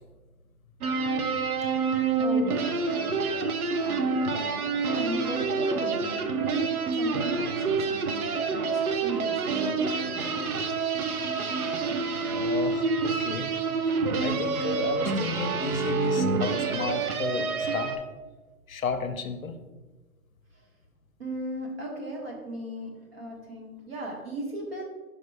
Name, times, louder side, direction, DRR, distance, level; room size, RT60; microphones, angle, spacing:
sound 1, 0.8-18.0, right 4 dB, 70° right, 0.8 m, -27 dB
voice 1, 1.7-3.4 3.8-10.4 20.5-20.7 21.2-24.8, right 1 dB, 40° right, -1 dB, 1.4 m, -38 dB
voice 2, 12.3-13.5 13.9-17.9 18.7-19.6, left 4 dB, 65° left, 7 dB, 0.7 m, -33 dB
5.5 x 5.1 x 3.4 m, 1.2 s
hypercardioid pair, 170°, 45 cm